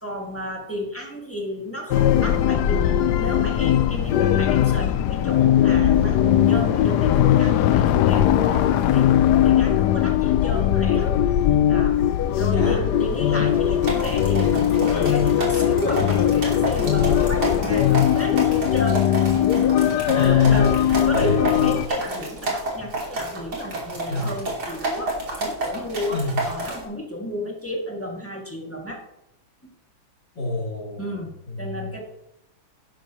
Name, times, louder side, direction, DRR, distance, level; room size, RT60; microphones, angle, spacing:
voice 1, 0.0-11.1 11.7-12.0 12.4-19.1 20.2-29.0 29.6-29.7 31.0-32.0, left 1 dB, 5° left, -1 dB, 1.9 m, -32 dB
sound 1, 1.9-21.9, left 10 dB, 75° left, 1.0 m, -19 dB
voice 2, 12.5-12.9 20.0-21.8 24.1-24.3 26.1-26.4 30.4-31.2 31.5-31.9, left 1 dB, 55° left, -5 dB, 3.9 m, -28 dB
sound 2, 13.8-26.8, right 2 dB, 50° right, 3.0 m, -30 dB
11.5 x 10.5 x 3.0 m, 0.87 s
omnidirectional pair, 2.2 m